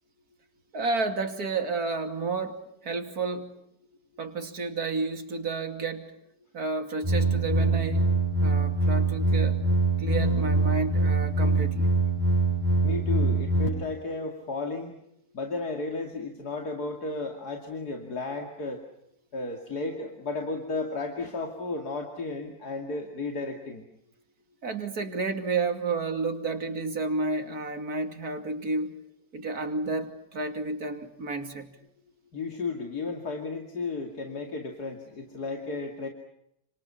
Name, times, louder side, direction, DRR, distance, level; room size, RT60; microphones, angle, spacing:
voice 1, 0.7-3.5 4.2-6.1 6.5-8.1 8.4-9.5 10.0-11.9 24.6-28.9 29.3-31.7, right 3 dB, 75° right, 5 dB, 3.1 m, -31 dB
sound 1, 7.0-13.7, right 2 dB, 10° right, 6.3 m, -24 dB
voice 2, 12.8-15.0 15.3-18.8 19.3-23.8 32.3-36.1, left 3 dB, 90° left, 3 dB, 3.1 m, -33 dB
30.0 x 27.0 x 5.7 m, 0.78 s
omnidirectional pair, 1.6 m